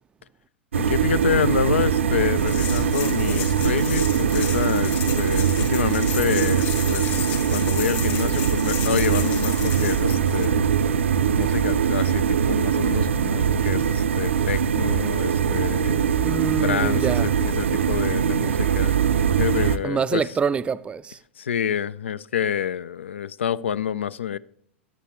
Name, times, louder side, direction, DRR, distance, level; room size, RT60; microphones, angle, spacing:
voice 1, 0.7-10.6 11.4-16.0 16.6-18.9 19.4-20.2 21.4-24.4, left 8 dB, 80° left, 0.3 m, -27 dB
sound 1, 0.7-19.8, right 7 dB, 80° right, 0.4 m, -22 dB
sound 2, 2.4-10.5, left 9 dB, 50° left, 2.5 m, -34 dB
voice 2, 16.2-17.3 19.8-21.2, right 6 dB, 15° right, 0.3 m, -25 dB
9.8 x 8.8 x 2.9 m
hypercardioid pair, 100°, 6 cm